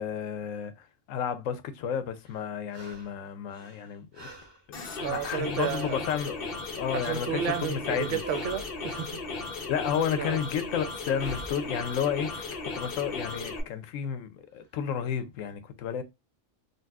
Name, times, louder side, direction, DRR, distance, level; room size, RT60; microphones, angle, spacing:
voice 1, 0.0-4.3 4.7-6.5 6.7-7.4 7.7-8.2 9.7-12.4 12.8-16.0, left 8 dB, 85° left, 1.0 m, -32 dB
sound 1, 2.2-3.2 3.5-6.1 8.1-8.8 11.1-11.7 14.6-14.7, right 1 dB, 25° right, 0.8 m, -46 dB
sound 2, 4.7-13.6, left 3 dB, 50° left, 0.9 m, -36 dB
voice 2, 5.0-6.0 6.9-9.2 10.2-10.4, right 8 dB, 75° right, 0.9 m, -32 dB
3.9 x 2.2 x 2.3 m
omnidirectional pair, 1.3 m